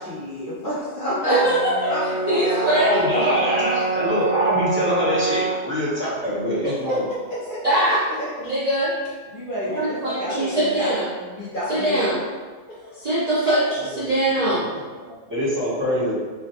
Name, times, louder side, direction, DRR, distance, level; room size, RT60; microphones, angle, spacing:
voice 1, 0.0-1.4 1.9-3.9 6.6-8.3 9.3-12.2 12.7-13.0 13.4-13.5, left 1 dB, 55° left, -9 dB, 0.6 m, -30 dB
voice 2, 1.2-1.9 2.3-3.4 7.6-8.0 8.4-8.9 9.7-11.0 11.7-12.2 13.0-13.6 14.0-14.7, right 1 dB, 85° right, -10 dB, 0.3 m, -22 dB
Brass instrument, 1.4-5.7, right 3 dB, 85° left, 1.1 m, -26 dB
voice 3, 2.8-7.1 9.6-9.8 13.8-14.4 14.6-16.2, equal, 15° right, -11 dB, 0.5 m, -24 dB
3.1 x 2.0 x 2.7 m, 1.4 s
omnidirectional pair, 1.4 m